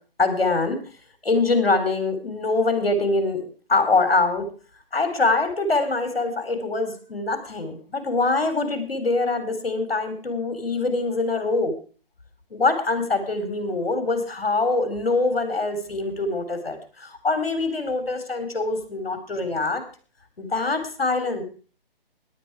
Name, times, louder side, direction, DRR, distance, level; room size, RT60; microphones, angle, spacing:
voice 1, 0.2-0.8 1.2-4.5 4.9-11.7 12.5-19.8 20.4-21.4, left 3 dB, 80° left, 9 dB, 3.7 m, -24 dB
18.0 x 10.5 x 4.8 m, 0.41 s
figure-of-eight pair, 140°, 29 cm